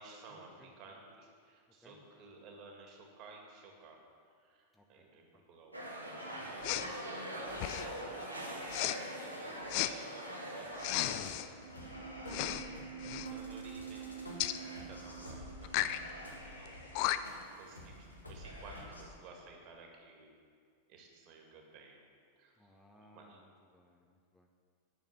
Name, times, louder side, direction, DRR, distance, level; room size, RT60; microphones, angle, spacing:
voice 1, 0.0-4.0 4.4-12.0 13.0-14.4 14.8-16.8 17.5-20.3 20.9-22.0 22.4-22.5 23.0-23.4, right 3 dB, 40° right, 1 dB, 2.2 m, -55 dB
sound 1, 5.7-11.2, equal, 85° right, 2.2 m, -42 dB
Respiratory sounds, 6.6-6.9 7.5-8.0 8.7-9.0 9.7-9.9 10.8-11.5 12.3-12.7 13.0-13.3 14.4-14.6 15.6-16.0 16.7-16.8 16.9-17.4, left 14 dB, 45° left, 0.4 m, -34 dB
sound 2, 10.9-19.1, right 3 dB, 80° left, 1.8 m, -46 dB
voice 2, 11.8-12.1 22.6-23.4 23.7-24.5, equal, 5° left, 1 dB, 0.9 m, -62 dB
10.5 x 7.0 x 7.3 m, 2.1 s
figure-of-eight pair, 90°, 0 cm